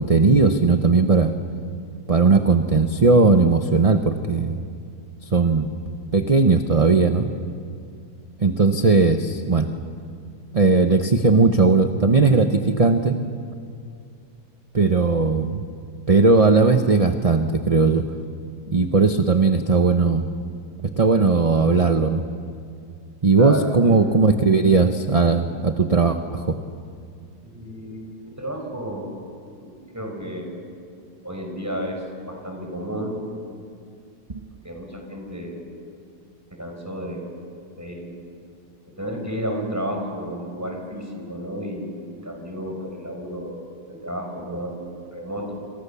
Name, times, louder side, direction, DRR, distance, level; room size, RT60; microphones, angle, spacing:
voice 1, 0.0-1.3 2.1-4.6 5.3-5.7 6.1-7.3 8.4-9.7 10.5-13.2 14.7-15.6 16.1-18.0 18.7-20.2 21.0-22.2 23.2-26.6, right 4 dB, 30° right, 7 dB, 0.8 m, -18 dB
voice 2, 23.4-24.1 27.4-28.1 28.4-29.1 29.6-30.5 31.2-33.2 34.6-35.7 36.5-37.3 37.8-38.2 39.0-45.6, equal, 10° right, 2 dB, 5.2 m, -32 dB
30.0 x 27.0 x 7.0 m, 2.3 s
omnidirectional pair, 1.8 m